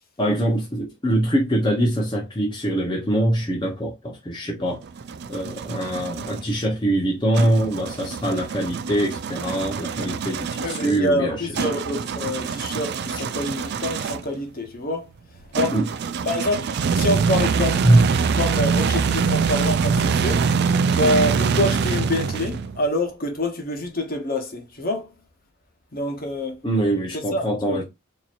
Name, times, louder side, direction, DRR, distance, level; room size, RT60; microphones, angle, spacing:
voice 1, 0.2-4.8 5.3-11.5 15.7-15.9 17.8-18.0 26.6-27.8, right 1 dB, 20° left, 0.8 m, -23 dB
sound 1, 4.6-6.4 7.3-14.4 15.5-22.8, right 5 dB, 50° right, 0.3 m, -24 dB
voice 2, 10.6-15.1 15.5-15.8 16.2-17.9 18.3-20.5 20.9-25.1 25.9-26.6 27.1-27.8, left 1 dB, 45° left, 1.1 m, -26 dB
4.3 x 2.9 x 2.5 m
head